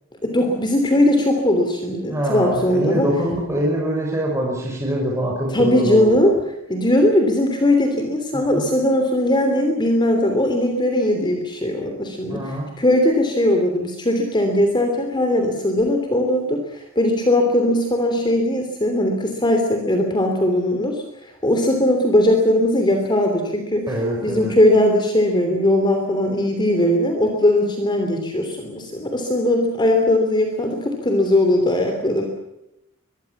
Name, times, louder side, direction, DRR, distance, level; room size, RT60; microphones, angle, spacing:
voice 1, 0.2-3.1 5.5-6.4 6.7-21.0 21.4-23.9 24.2-32.3, left 1 dB, 25° left, 4 dB, 3.2 m, -19 dB
voice 2, 2.1-6.2 8.3-8.7 12.3-12.7 23.9-24.5, equal, 15° right, -3 dB, 5.9 m, -24 dB
23.5 x 22.5 x 7.3 m, 0.87 s
head